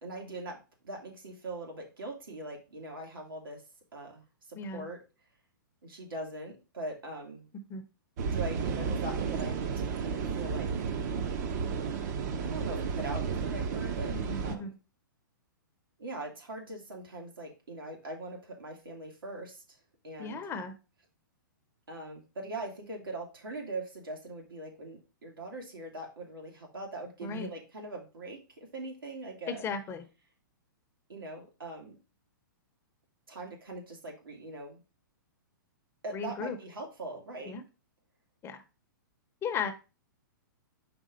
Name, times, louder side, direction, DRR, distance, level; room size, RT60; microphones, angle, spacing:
voice 1, 0.0-3.6 3.9-5.0 5.8-7.5 8.3-10.7 12.4-14.2 14.4-14.7 16.0-19.6 20.0-20.4 21.9-29.7 31.1-32.0 33.3-34.8 36.0-37.5, right 2 dB, 85° right, 0 dB, 2.2 m, -41 dB
voice 2, 4.6-4.9 7.7-7.8 14.1-14.7 20.2-20.7 27.2-27.5 29.5-30.1 36.1-36.6 37.5-37.6 38.4-38.6 39.4-39.7, left 5 dB, 20° left, 8 dB, 0.7 m, -36 dB
sound 1, 8.2-14.6, right 6 dB, 55° right, 0.9 m, -32 dB
5.1 x 3.6 x 5.1 m, 0.30 s
hypercardioid pair, 125°, 11 cm